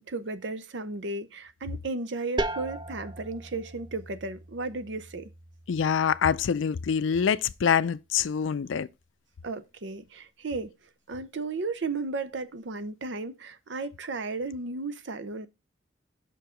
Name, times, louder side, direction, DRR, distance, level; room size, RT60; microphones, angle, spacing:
voice 1, 0.1-5.3 9.4-10.7 11.1-15.5, right 3 dB, 70° right, 0.7 m, -34 dB
sound 1, 2.4-7.9, right 2 dB, 25° right, 0.4 m, -39 dB
voice 2, 5.7-8.9, left 7 dB, 85° left, 0.4 m, -25 dB
6.1 x 4.6 x 5.0 m
head